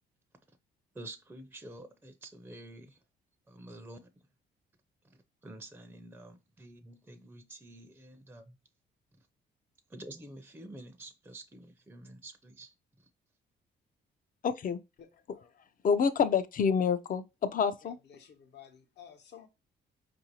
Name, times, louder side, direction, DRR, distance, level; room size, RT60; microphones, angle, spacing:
voice 1, 0.9-3.0 3.5-4.0 5.4-8.6 9.9-12.7, right 1 dB, 10° right, 0.5 m, -48 dB
voice 2, 14.4-14.8 15.8-18.0, left 6 dB, 45° left, 0.5 m, -27 dB
voice 3, 15.0-15.5 17.8-19.5, left 8 dB, 60° left, 0.9 m, -54 dB
4.7 x 2.6 x 3.0 m
cardioid pair, 90°, 20 cm